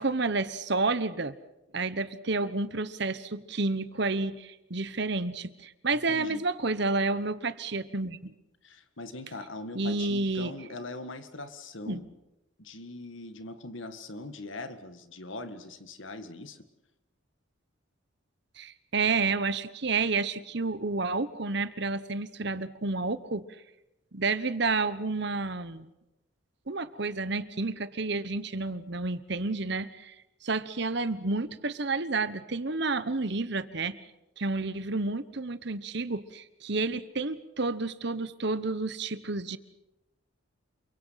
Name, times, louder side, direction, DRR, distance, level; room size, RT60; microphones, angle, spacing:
voice 1, 0.0-1.3 1.7-8.3 9.7-10.5 11.9-12.0 18.6-23.4 24.1-25.9 26.7-30.1 30.4-34.0 34.4-39.6, right 3 dB, 55° right, 14 dB, 1.1 m, -30 dB
voice 2, 5.9-6.4 8.6-12.1 12.6-16.6, left 2 dB, 70° left, 10 dB, 1.9 m, -41 dB
28.5 x 23.5 x 5.8 m, 0.92 s
head